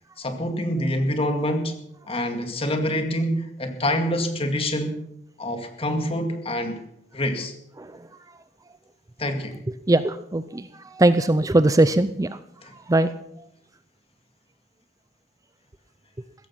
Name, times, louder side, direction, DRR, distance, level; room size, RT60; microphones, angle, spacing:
voice 1, 0.2-1.7 2.1-5.0 5.4-6.8 7.1-7.5 9.2-9.6 12.6-12.7, left 1 dB, 35° left, 6 dB, 2.1 m, -26 dB
voice 2, 9.9-12.4 12.9-13.1, right 2 dB, 20° right, 12 dB, 0.5 m, -20 dB
16.0 x 14.5 x 5.7 m, 0.76 s
head